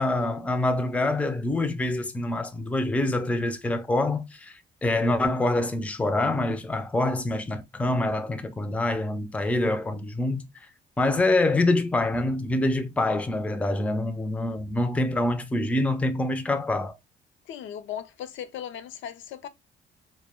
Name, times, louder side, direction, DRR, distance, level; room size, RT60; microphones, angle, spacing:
voice 1, 0.0-10.4 11.0-16.9, left 2 dB, 5° left, 0.3 m, -25 dB
voice 2, 17.5-19.5, left 9 dB, 75° left, 0.4 m, -37 dB
2.1 x 2.0 x 3.3 m
cardioid pair, 90°, 20 cm